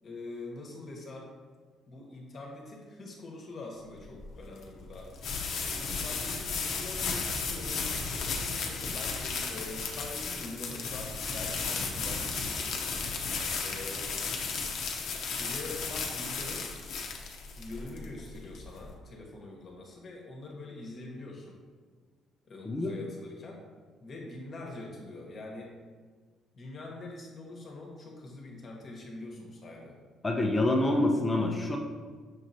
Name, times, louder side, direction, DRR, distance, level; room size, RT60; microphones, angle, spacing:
voice 1, 0.0-1.3 1.9-5.1 5.7-12.7 13.6-14.1 15.4-16.7 17.6-21.6 22.5-23.6 24.0-25.7 26.5-30.0, left 2 dB, 45° left, -1 dB, 1.0 m, -44 dB
sound 1, 4.0-18.9, left 4 dB, 65° left, 0.6 m, -34 dB
voice 2, 22.6-23.0 30.2-31.8, left 1 dB, 20° left, 1 dB, 0.4 m, -26 dB
6.2 x 3.0 x 2.6 m, 1.5 s
cardioid pair, 110°, 0 cm